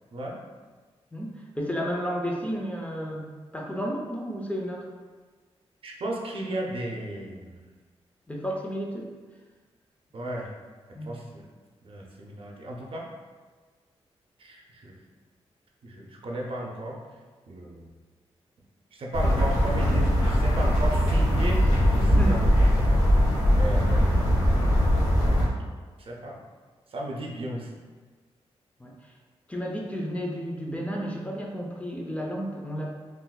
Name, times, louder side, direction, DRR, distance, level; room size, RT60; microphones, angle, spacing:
voice 1, 1.1-4.8 8.3-9.1 10.9-11.1 22.1-22.3 28.8-29.1 29.5-33.0, equal, 10° left, -1 dB, 0.5 m, -32 dB
voice 2, 5.8-7.6 10.1-10.5 11.1-11.4 11.8-13.1 14.4-15.0 15.8-17.0 17.5-17.9 18.9-24.2 26.0-26.4 26.9-27.8, right 1 dB, 55° right, -1 dB, 0.6 m, -35 dB
sound 1, 19.1-25.5, equal, 85° left, 1.0 m, -21 dB
3.6 x 2.6 x 2.2 m, 1.4 s
cardioid pair, 85°, 11 cm